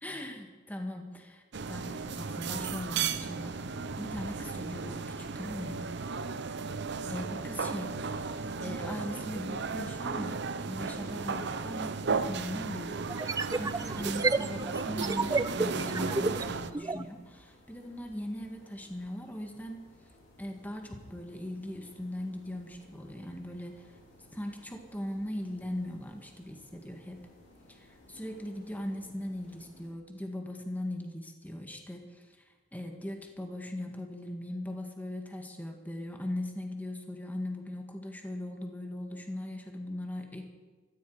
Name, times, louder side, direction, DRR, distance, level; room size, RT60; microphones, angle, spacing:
voice 1, 0.0-3.6 4.0-5.9 7.1-19.8 20.4-23.9 24.3-27.3 27.7-32.3 32.7-40.4, left 1 dB, 10° left, 3 dB, 1.7 m, -39 dB
sound 1, 1.5-16.7, right 5 dB, 60° right, 0.7 m, -35 dB
sound 2, 11.7-11.8 13.1-17.1, right 3 dB, 20° right, 0.4 m, -31 dB
sound 3, 13.1-29.9, left 1 dB, 85° left, 4.8 m, -59 dB
17.0 x 14.0 x 4.9 m, 1.3 s
head